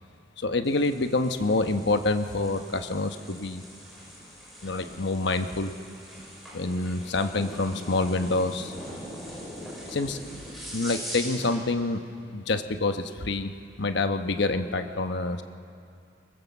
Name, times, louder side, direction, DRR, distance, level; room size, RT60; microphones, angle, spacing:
voice 1, 0.4-3.6 4.6-5.7 6.5-8.7 9.9-10.2 10.7-12.0 12.3-15.4, left 2 dB, 65° left, 8 dB, 1.0 m, -27 dB
sound 1, 0.6-11.6, equal, ahead, 6.9 m, -42 dB
23.5 x 20.5 x 7.1 m, 2.5 s
head